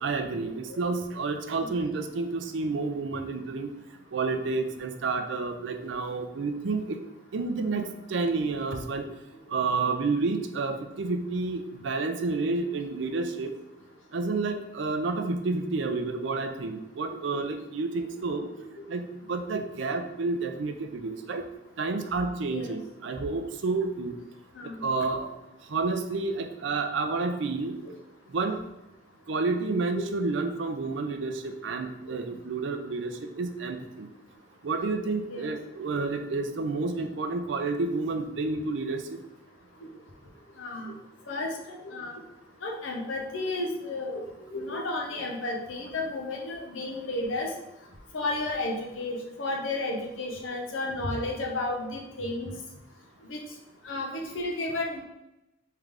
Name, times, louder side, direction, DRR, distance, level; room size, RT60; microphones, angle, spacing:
voice 1, 0.0-3.7 4.1-7.0 7.3-9.0 9.5-13.5 14.1-18.5 18.9-21.4 21.8-24.2 24.8-25.3 25.7-27.8 28.3-28.6 29.3-34.1 34.6-39.2, right 3 dB, 65° right, 6 dB, 0.5 m, -30 dB
voice 2, 40.6-40.9 41.3-41.5 41.8-42.1 42.6-47.5 48.1-52.5 53.3-53.4 53.8-55.0, left 2 dB, 80° left, 0 dB, 0.9 m, -32 dB
3.6 x 3.4 x 3.4 m, 0.93 s
head